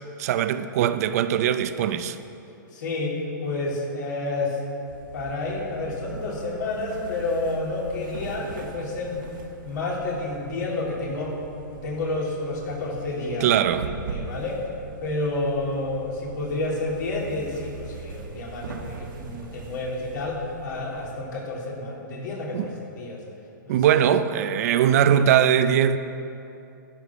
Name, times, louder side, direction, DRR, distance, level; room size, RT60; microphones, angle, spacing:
voice 1, 0.2-2.2 13.4-13.9 22.5-22.7 23.7-26.0, right 9 dB, 50° right, 0.6 m, -21 dB
voice 2, 2.7-4.6 5.1-9.3 9.6-11.4 11.8-14.6 15.0-23.2 23.7-23.8, left 2 dB, 65° left, 3.7 m, -30 dB
sound 1, 4.9-21.1, right 5 dB, 80° right, 1.7 m, -41 dB
12.5 x 11.0 x 6.1 m
hypercardioid pair, 155°, 11 cm